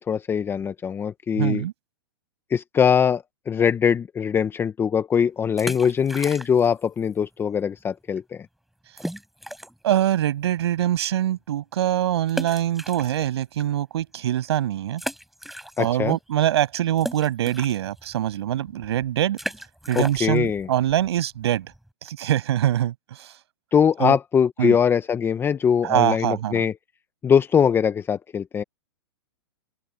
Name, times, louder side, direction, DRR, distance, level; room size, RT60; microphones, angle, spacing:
voice 1, 0.0-1.6 2.5-8.5 15.8-16.2 19.9-20.7 23.7-26.7 27.2-28.6, left 7 dB, 15° left, 0.9 m, -22 dB
voice 2, 1.3-1.7 9.8-15.0 15.8-19.4 19.9-21.7 22.0-23.3 24.0-24.2 24.6-24.8 25.8-26.6, right 12 dB, 70° right, 7.9 m, -24 dB
sound 1, 5.4-6.8 7.1-7.2 7.8-7.9 8.1-8.2 9.0-9.9 10.4-10.5 12.3-13.6 14.1-14.2 14.9-16.1 16.4-21.9, equal, ahead, 7.4 m, -36 dB
open air
hypercardioid pair, 135°, 14 cm